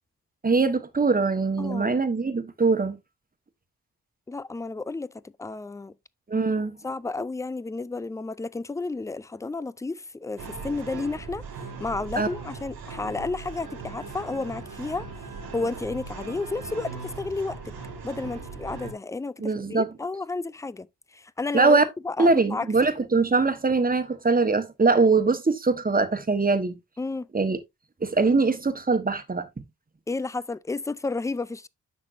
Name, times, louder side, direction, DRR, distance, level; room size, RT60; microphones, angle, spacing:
voice 1, 0.4-3.0 6.3-6.8 12.2-12.3 19.4-19.9 21.5-21.8 22.2-26.8 27.3-27.6 28.0-29.5, right 3 dB, 25° right, 1.2 m, -22 dB
voice 2, 1.6-1.9 4.3-5.9 6.8-11.4 11.8-15.1 15.5-17.7 18.0-20.9 21.1-21.8 22.0-22.7 27.0-27.3 30.1-31.7, left 3 dB, 10° left, 0.3 m, -32 dB
sound 1, 10.4-18.9, right 4 dB, 85° right, 3.0 m, -39 dB
10.0 x 6.3 x 2.6 m
wide cardioid pair, 100°, 36 cm